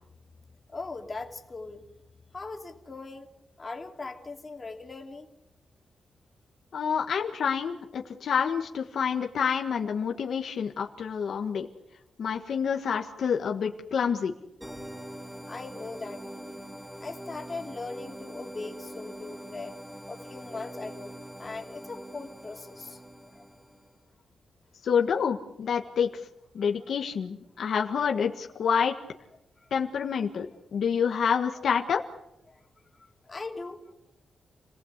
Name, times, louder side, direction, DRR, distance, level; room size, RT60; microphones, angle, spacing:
voice 1, 0.7-1.9 2.3-3.3 3.6-5.3 15.5-16.6 17.0-19.8 20.1-23.0 23.3-23.4 29.6-29.7 32.5-32.6 33.2-33.9, left 3 dB, 25° left, 3 dB, 2.8 m, -40 dB
voice 2, 6.7-11.7 12.2-14.3 24.8-26.1 26.5-28.9 29.7-32.0, left 7 dB, 65° left, 3 dB, 1.6 m, -28 dB
sound 1, 14.6-24.0, equal, 5° right, 2.4 m, -43 dB
29.5 x 19.0 x 8.2 m, 0.87 s
wide cardioid pair, 155°, 0 cm